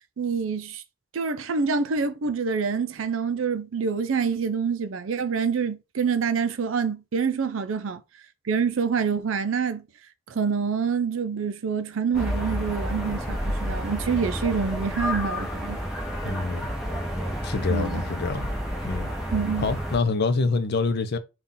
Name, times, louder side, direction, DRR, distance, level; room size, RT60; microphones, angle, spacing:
voice 1, 0.2-0.8 1.1-8.0 8.5-9.8 10.3-15.8 17.7-18.0 19.3-19.7, right 5 dB, 75° right, 0.5 m, -26 dB
sound 1, 12.1-20.0, equal, 5° right, 1.0 m, -30 dB
voice 2, 16.2-16.7 17.3-18.5 18.8-19.1 19.6-21.2, left 4 dB, 55° left, 0.5 m, -26 dB
4.1 x 2.4 x 3.7 m
head